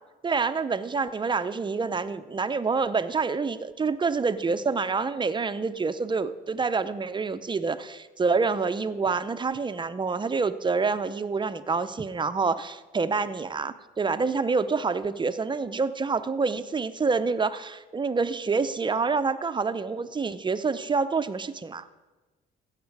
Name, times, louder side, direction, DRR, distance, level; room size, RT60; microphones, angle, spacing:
voice 1, 0.2-21.8, right 4 dB, 25° right, 12 dB, 0.6 m, -27 dB
15.5 x 7.4 x 4.7 m, 1.2 s
cardioid pair, 90°, 20 cm